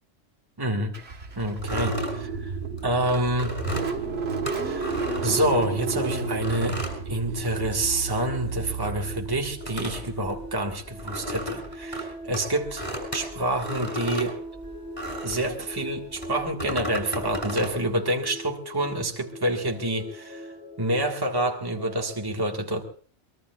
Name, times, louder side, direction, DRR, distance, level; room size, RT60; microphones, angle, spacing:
voice 1, 0.6-0.9 1.4-2.5 2.8-3.5 4.6-6.8 7.1-12.8 13.1-14.3 15.2-20.5 20.8-22.8, right 1 dB, 20° right, 1 dB, 1.7 m, -27 dB
Car / Engine starting, 0.9-9.7, right 5 dB, 55° right, 1.7 m, -32 dB
sound 1, 1.6-5.9 6.4-15.5 16.1-17.8, equal, 25° left, 5.9 m, -35 dB
sound 2, 7.3-22.2, equal, 55° left, 8.0 m, -41 dB
23.5 x 21.5 x 2.4 m, 0.43 s
omnidirectional pair, 1.3 m